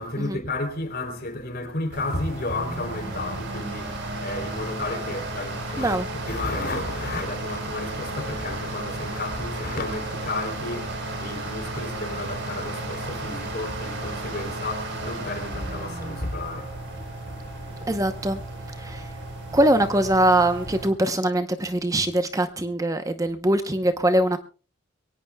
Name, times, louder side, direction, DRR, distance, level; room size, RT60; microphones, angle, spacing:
voice 1, 0.0-17.9, left 2 dB, 50° left, 3.4 m, -32 dB
sound 1, 1.9-20.9, right 2 dB, 60° right, 4.1 m, -34 dB
voice 2, 17.9-18.4 18.8-19.1 19.5-24.4, right 1 dB, 15° right, 0.8 m, -22 dB
23.0 x 18.0 x 2.3 m
head